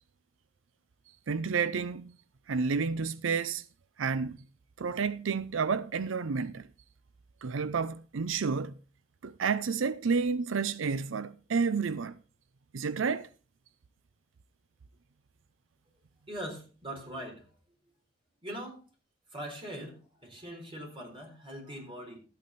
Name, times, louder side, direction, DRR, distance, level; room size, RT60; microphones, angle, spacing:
voice 1, 1.3-2.1 2.5-3.6 4.0-4.4 4.8-6.7 7.4-8.8 9.2-12.2 12.7-13.3, right 5 dB, 85° right, 0.5 m, -30 dB
voice 2, 16.3-17.6 18.4-18.8 19.3-22.2, right 1 dB, 30° right, 4.0 m, -41 dB
13.5 x 8.5 x 4.1 m
head